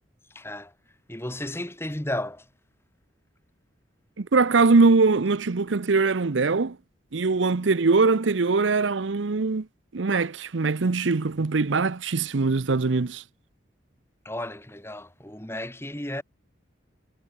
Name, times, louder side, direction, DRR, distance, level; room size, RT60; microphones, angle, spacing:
voice 1, 0.3-0.7 1.1-2.5 14.2-16.2, left 1 dB, 15° left, 3.3 m, -33 dB
voice 2, 4.2-6.8 7.1-9.7 9.9-13.2, right 4 dB, 80° right, 0.7 m, -22 dB
head